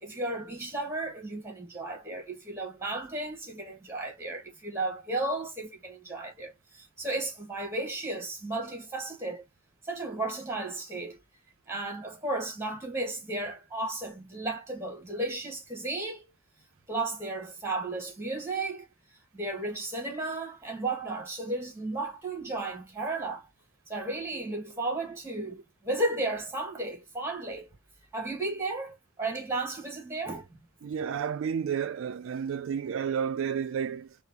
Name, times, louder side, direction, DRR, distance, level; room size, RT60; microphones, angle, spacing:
voice 1, 0.0-9.4 9.8-11.2 11.7-16.2 16.9-18.9 19.3-23.5 23.9-27.7 28.1-30.6, right 2 dB, 10° right, 1.3 m, -34 dB
voice 2, 30.8-34.2, right 7 dB, 65° right, 0.3 m, -31 dB
3.9 x 2.0 x 2.6 m
head